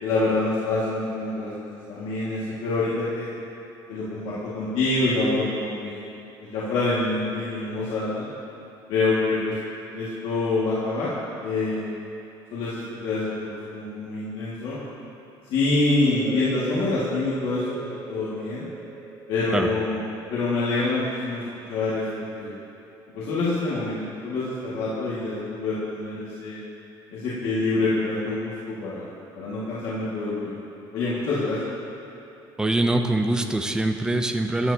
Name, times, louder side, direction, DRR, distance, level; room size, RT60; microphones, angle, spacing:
voice 1, 0.0-3.3 3.9-6.0 6.5-8.3 8.9-9.6 9.9-11.1 11.4-11.9 12.5-14.8 15.5-18.7 19.3-20.0 20.3-21.4 21.7-22.1 22.3-22.6 23.1-26.6 27.1-29.1 29.3-30.5 30.9-31.6, left 2 dB, 70° left, -10 dB, 1.9 m, -26 dB
sound 1, 16.1-21.5, right 2 dB, 35° left, 2.2 m, -38 dB
voice 2, 32.6-34.7, right 2 dB, 5° right, 5 dB, 0.4 m, -23 dB
13.5 x 9.5 x 2.8 m, 3.0 s
cardioid pair, 170°, 9 cm